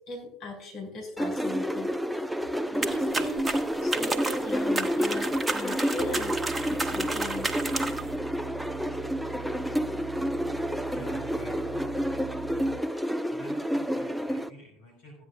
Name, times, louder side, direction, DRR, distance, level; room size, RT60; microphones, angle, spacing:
voice 1, 0.1-2.0 2.7-6.4 6.7-7.5, left 2 dB, 55° left, 0 dB, 4.7 m, -38 dB
sound 1, 1.2-14.5, equal, ahead, 0.6 m, -30 dB
sound 2, 2.8-8.1, right 3 dB, 20° right, 1.2 m, -32 dB
sound 3, 6.0-12.8, right 8 dB, 65° right, 0.4 m, -43 dB
voice 2, 10.8-12.3 13.3-15.2, left 1 dB, 75° left, -1 dB, 4.4 m, -49 dB
15.0 x 9.7 x 2.3 m, 0.72 s
hypercardioid pair, 70°, 0 cm